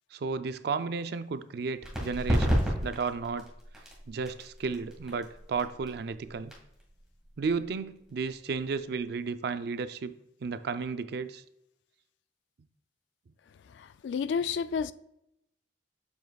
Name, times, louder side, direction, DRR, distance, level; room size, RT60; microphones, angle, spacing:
voice 1, 0.1-3.5 4.1-6.5 7.4-10.1 10.4-11.4, right 5 dB, 65° right, 0.4 m, -33 dB
sound 1, 1.8-9.1, equal, 5° right, 1.9 m, -33 dB
voice 2, 13.8-14.9, left 6 dB, 80° left, 0.3 m, -31 dB
7.7 x 7.3 x 2.3 m
head